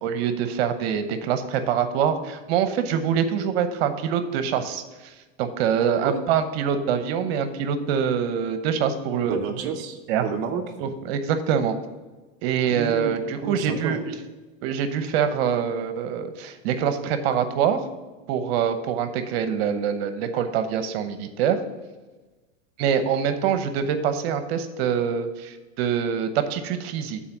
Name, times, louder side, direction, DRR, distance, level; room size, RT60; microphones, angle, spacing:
voice 1, 0.0-5.1 5.4-9.4 10.1-10.3 10.8-11.7 12.4-14.1 14.6-17.8 18.3-21.6 22.8-27.2, right 8 dB, 50° right, 9 dB, 0.9 m, -25 dB
voice 2, 9.3-10.6 12.6-14.0, right 6 dB, 30° right, 0 dB, 0.6 m, -30 dB
8.6 x 4.2 x 7.1 m, 1.2 s
supercardioid pair, 135°, 39 cm